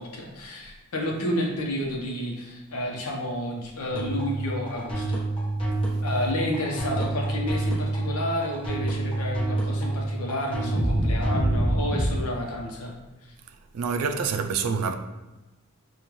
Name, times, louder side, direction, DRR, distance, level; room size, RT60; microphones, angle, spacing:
voice 1, 0.0-5.3 6.0-12.9 13.2-13.3, left 1 dB, 80° left, 0.9 m, -30 dB
sound 1, 3.9-12.1, right 1 dB, 25° left, 1.1 m, -27 dB
voice 2, 13.5-14.9, right 5 dB, 85° right, 0.4 m, -27 dB
5.2 x 2.5 x 3.1 m
head